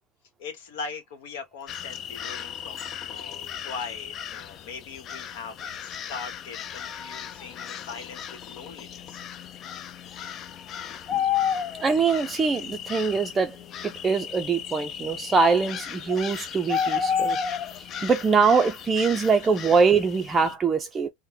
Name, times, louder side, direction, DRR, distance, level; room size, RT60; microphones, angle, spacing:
voice 1, 0.4-9.2 19.4-19.6, left 5 dB, 70° left, 1.1 m, -40 dB
sound 1, 1.7-20.5, left 7 dB, 40° left, 0.4 m, -33 dB
voice 2, 11.8-13.6 14.0-17.4 17.7-21.1, right 5 dB, 20° right, 0.5 m, -23 dB
3.7 x 2.1 x 2.8 m
hypercardioid pair, 110°, 0 cm